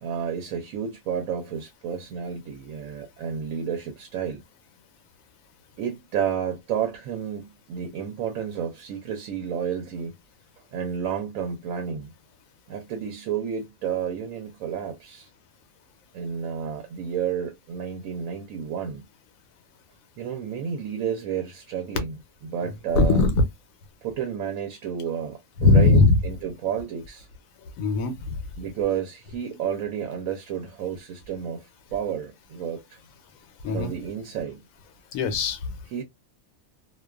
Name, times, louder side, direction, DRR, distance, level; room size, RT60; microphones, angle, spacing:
voice 1, 0.0-4.4 5.8-10.1 10.7-12.1 12.7-15.3 16.1-19.0 20.2-22.1 22.4-23.3 24.0-27.3 28.6-33.0 33.7-34.6 35.9-36.0, right 8 dB, 80° right, 1.0 m, -31 dB
voice 2, 23.0-23.3 25.6-26.2 27.8-28.4 33.6-33.9 35.1-35.7, left 3 dB, 80° left, 1.0 m, -19 dB
2.4 x 2.2 x 2.3 m
omnidirectional pair, 1.4 m